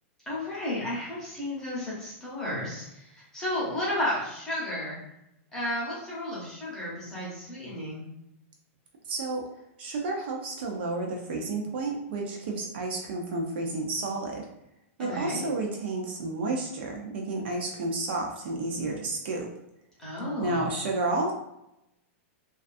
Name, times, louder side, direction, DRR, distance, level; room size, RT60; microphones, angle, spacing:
voice 1, 0.3-5.0 5.5-8.1 15.0-15.4 20.0-20.6, left 1 dB, 5° left, -8 dB, 0.7 m, -33 dB
voice 2, 9.1-9.5 9.8-14.4 15.0-19.5 20.4-21.3, right 2 dB, 50° right, 0 dB, 0.4 m, -31 dB
2.4 x 2.3 x 2.5 m, 0.85 s
supercardioid pair, 175°, 7 cm